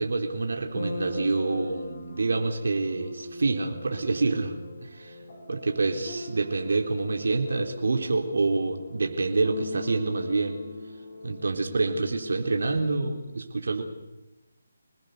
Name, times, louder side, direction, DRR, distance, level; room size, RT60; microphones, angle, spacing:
voice 1, 0.0-4.6 4.8-5.2 5.5-10.6 11.2-13.8, right 3 dB, 70° right, 3 dB, 3.7 m, -27 dB
sound 1, 0.7-13.2, left 1 dB, 35° left, 7.9 m, -41 dB
27.0 x 20.0 x 6.7 m, 0.98 s
hypercardioid pair, 165°, 0 cm